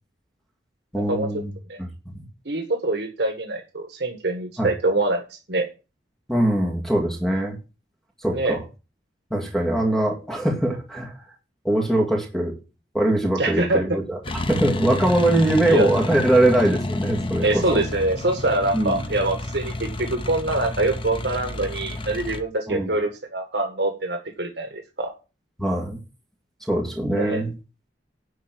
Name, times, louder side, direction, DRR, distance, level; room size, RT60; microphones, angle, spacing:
voice 1, 0.9-1.5 2.1-2.3 4.6-4.7 6.3-7.6 8.2-8.6 9.3-11.1 11.6-12.6 12.9-17.8 18.7-19.0 22.7-22.9 25.6-26.0 26.7-27.5, right 1 dB, ahead, 1 dB, 2.2 m, -22 dB
voice 2, 2.5-5.2 5.5-5.6 8.3-8.5 13.4-14.0 15.3-15.4 15.7-15.9 17.4-25.1 27.1-27.4, right 2 dB, 65° right, 4 dB, 1.7 m, -24 dB
sound 1, 14.2-22.4, left 2 dB, 30° left, 0.9 m, -30 dB
11.0 x 4.6 x 7.6 m, 0.31 s
head